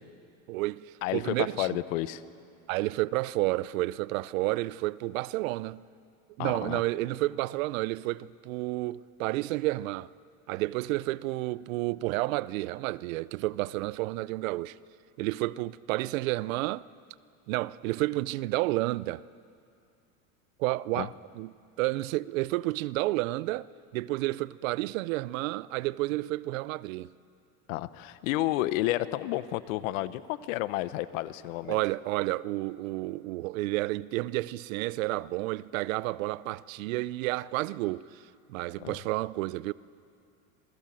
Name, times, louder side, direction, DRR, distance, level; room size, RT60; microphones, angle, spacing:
voice 1, 0.5-1.8 2.7-5.8 6.4-10.1 10.5-14.8 15.2-16.8 17.5-19.2 20.6-21.5 21.8-23.7 23.9-27.1 31.7-38.2 38.5-39.7, right 19 dB, 70° right, 0.7 m, -30 dB
voice 2, 1.0-2.2 6.4-6.8 21.0-21.1 27.7-31.8 38.8-39.0, left 16 dB, 70° left, 1.1 m, -31 dB
27.0 x 20.5 x 7.6 m
supercardioid pair, 135°, 41 cm